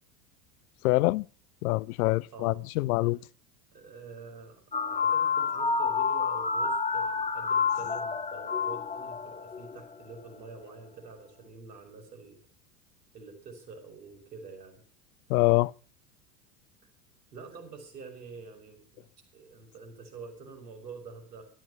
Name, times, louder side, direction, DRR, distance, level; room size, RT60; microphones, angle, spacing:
voice 1, 0.8-1.3 1.6-3.2 15.3-15.7, left 21 dB, 60° left, 0.7 m, -25 dB
voice 2, 3.7-4.6 4.9-12.4 13.1-14.7 17.3-19.0 19.3-21.4, right 4 dB, 80° right, 6.8 m, -46 dB
sound 1, 4.7-9.8, left 5 dB, 15° left, 2.1 m, -29 dB
13.5 x 12.5 x 7.0 m
hypercardioid pair, 90°, 49 cm